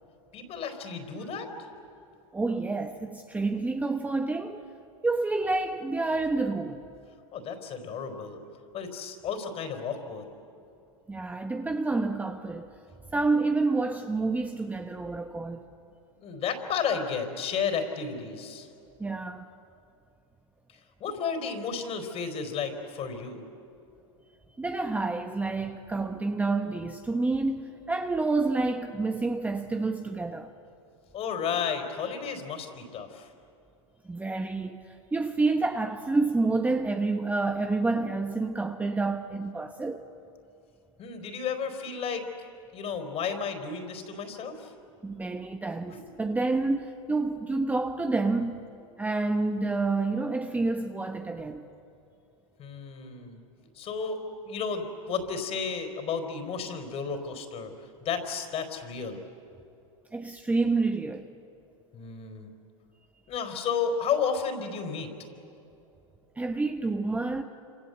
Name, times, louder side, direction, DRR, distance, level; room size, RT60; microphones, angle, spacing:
voice 1, 0.3-1.5 7.3-8.4 8.7-10.3 16.2-18.7 20.7-23.5 31.1-33.3 41.0-42.3 42.7-44.7 45.9-46.2 52.6-53.4 53.7-57.7 58.0-59.2 61.9-62.5 63.3-65.1, left 6 dB, 35° left, 4.2 m, -32 dB
voice 2, 2.3-4.7 5.0-6.9 11.1-12.7 13.1-15.7 19.0-19.5 24.6-30.5 34.0-40.0 45.0-48.7 49.0-51.7 60.1-61.3 66.4-67.4, right 3 dB, 10° right, 1.1 m, -28 dB
27.0 x 26.5 x 8.0 m
hypercardioid pair, 110°, 17 cm